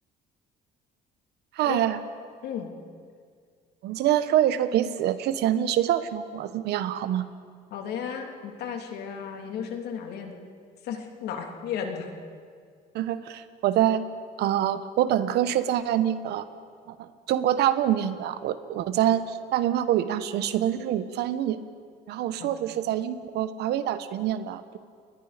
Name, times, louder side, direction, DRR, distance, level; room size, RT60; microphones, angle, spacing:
voice 1, 1.6-2.0 3.8-7.3 12.9-14.1 14.4-16.4 16.9-21.6 22.1-24.8, right 11 dB, 80° right, 12 dB, 1.2 m, -25 dB
voice 2, 7.7-10.4 10.8-12.1 22.4-22.5, left 7 dB, 75° left, 3 dB, 3.1 m, -34 dB
29.5 x 22.0 x 5.2 m, 2.1 s
cardioid pair, 110°, 17 cm